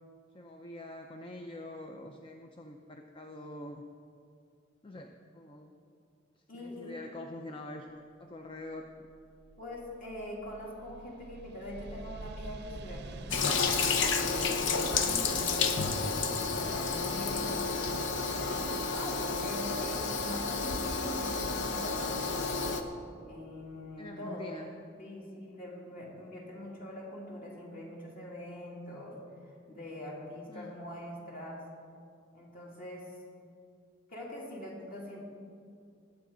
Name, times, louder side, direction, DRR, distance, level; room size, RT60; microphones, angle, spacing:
voice 1, 0.3-3.8 4.8-5.7 6.6-9.1 15.0-15.3 24.0-24.7 30.5-30.7, left 1 dB, 25° left, 4 dB, 0.5 m, -45 dB
voice 2, 6.5-6.9 9.6-13.6 14.1-17.6 17.9-18.6 18.9-22.6 23.2-24.5 25.0-29.2 29.4-31.6 32.3-33.2 34.1-35.2, left 1 dB, 45° left, -3 dB, 2.8 m, -43 dB
sound 1, 8.7-19.4, right 2 dB, 60° right, 0.6 m, -48 dB
Toilet flush, 13.3-22.8, left 4 dB, 75° left, 0.8 m, -31 dB
20.5 x 8.4 x 3.9 m, 2.5 s
head